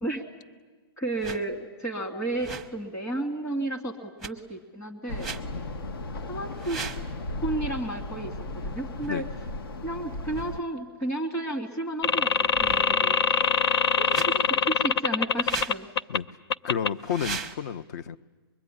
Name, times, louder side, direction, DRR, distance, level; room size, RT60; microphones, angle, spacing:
voice 1, 1.0-5.3 6.3-6.8 7.4-8.4 8.6-9.2 9.8-13.2 13.9-15.9, right 2 dB, 15° left, 7 dB, 2.4 m, -32 dB
sound 1, 1.2-1.4 2.3-2.8 4.2-4.3 5.1-5.4 6.5-7.1 9.0-9.1 10.3-10.5 12.4-13.1 14.1-14.3 15.4-15.8 16.9-17.6, right 5 dB, ahead, 0.9 m, -37 dB
sound 2, 5.1-10.6, left 2 dB, 65° left, 1.3 m, -36 dB
sound 3, 12.0-16.2 16.5-16.9, left 6 dB, 85° left, 0.8 m, -23 dB
voice 2, 12.6-13.2 16.1-16.3 16.6-18.2, left 8 dB, 45° left, 17 dB, 0.8 m, -32 dB
24.5 x 22.5 x 9.9 m, 1.4 s
hypercardioid pair, 165°, 13 cm